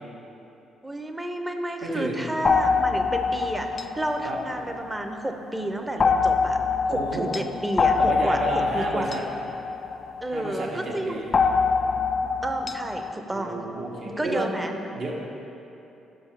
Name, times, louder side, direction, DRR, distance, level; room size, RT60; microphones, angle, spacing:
voice 1, 0.8-9.1 10.2-11.3 12.2-13.7 14.2-14.8, right 1 dB, 15° right, 5 dB, 0.6 m, -31 dB
voice 2, 1.8-2.2 4.2-4.4 6.9-7.3 8.0-9.2 10.3-11.3 13.3-14.5 14.9-15.1, right 2 dB, 60° right, -2 dB, 1.2 m, -31 dB
sound 1, 2.4-5.2 6.0-10.5 11.3-13.1, left 5 dB, 45° left, 0.3 m, -25 dB
5.4 x 5.4 x 5.9 m, 2.9 s
supercardioid pair, 70°, 0 cm